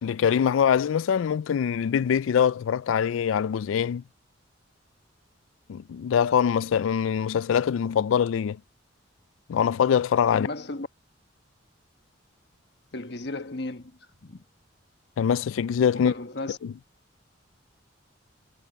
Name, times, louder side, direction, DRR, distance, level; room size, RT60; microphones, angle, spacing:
voice 1, 0.0-4.0 5.7-8.6 9.5-10.5 15.2-16.1 16.6-16.7, left 8 dB, 80° left, 0.3 m, -23 dB
voice 2, 10.3-10.9 12.9-13.9 14.2-14.4 15.9-16.6, left 2 dB, 55° left, 1.3 m, -34 dB
head